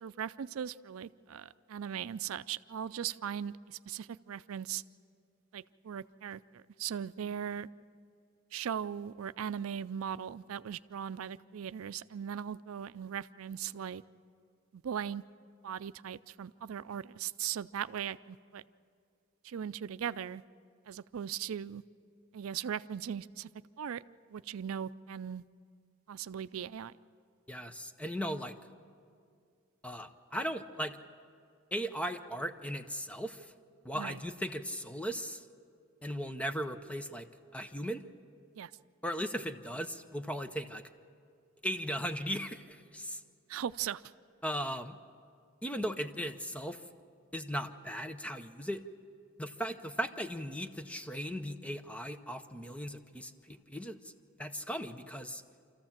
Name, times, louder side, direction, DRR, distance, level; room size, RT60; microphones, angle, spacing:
voice 1, 0.0-4.8 5.5-7.7 8.5-14.0 14.7-15.2 15.6-18.6 19.4-20.4 20.9-21.8 22.3-23.5 23.8-24.0 24.3-25.4 26.1-26.9 33.9-34.2 38.6-38.7 43.5-44.0, right 8 dB, 85° right, 15 dB, 0.4 m, -39 dB
voice 2, 27.5-28.6 29.8-31.0 31.7-33.5 33.8-35.4 36.0-37.3 37.5-38.0 39.0-40.8 41.6-43.2 44.4-45.0 45.6-46.8 47.3-48.8 49.4-54.1 54.4-55.4, equal, 5° left, 9 dB, 0.7 m, -37 dB
26.5 x 14.5 x 7.3 m, 2.3 s
head